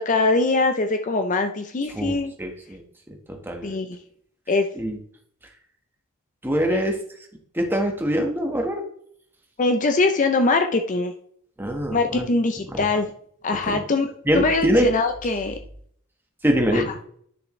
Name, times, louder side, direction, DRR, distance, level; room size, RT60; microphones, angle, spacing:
voice 1, 0.0-2.3 3.6-4.0 4.5-4.7 6.7-6.8 9.6-11.1 11.9-13.1 13.4-15.6 16.7-16.8, left 3 dB, 35° left, 7 dB, 0.5 m, -22 dB
voice 2, 1.9-2.8 3.3-3.8 4.8-5.0 6.4-7.0 7.5-8.8 11.6-12.3 12.7-12.8 13.7-13.8 14.2-14.9 16.4-16.9, equal, 10° right, 2 dB, 1.2 m, -23 dB
10.5 x 6.6 x 3.1 m, 0.64 s
head